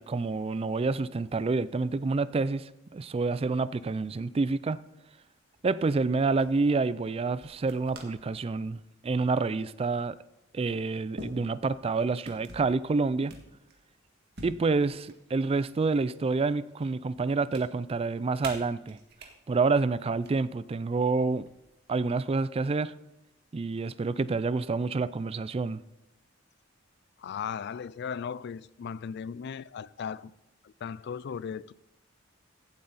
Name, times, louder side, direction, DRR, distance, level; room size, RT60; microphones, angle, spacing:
voice 1, 0.0-4.8 5.6-10.2 10.5-13.3 14.4-19.0 19.5-21.5 21.9-22.9 23.5-25.8, right 4 dB, 30° right, 0.3 m, -28 dB
sound 1, 5.6-5.9 6.3-6.6 7.4-8.3 8.7-9.0 10.0-10.1 11.2-11.9 12.2-12.8 13.3-13.9 14.4-15.7 16.1-16.9 17.1-17.6 18.4-19.3 20.1-20.3 21.4-21.9, right 2 dB, 55° right, 1.8 m, -46 dB
voice 2, 27.2-30.3 30.6-31.7, left 7 dB, 55° left, 0.3 m, -37 dB
16.0 x 7.9 x 4.1 m
head